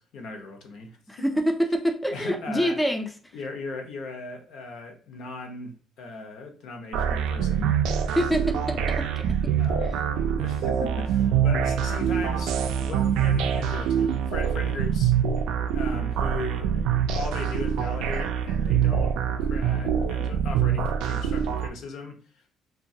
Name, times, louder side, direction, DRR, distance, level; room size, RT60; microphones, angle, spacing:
voice 1, 0.0-1.0 2.1-2.8 3.3-8.2 9.5-10.1 10.4-15.2 15.7-16.7 17.1-19.1 19.4-22.4, left 3 dB, 65° left, 0.7 m, -38 dB
voice 2, 1.1-3.1 8.2-9.3, equal, 5° left, 0.3 m, -26 dB
sound 1, 6.9-21.7, right 8 dB, 80° right, 0.3 m, -25 dB
2.9 x 2.2 x 2.6 m
cardioid pair, 145°, 0 cm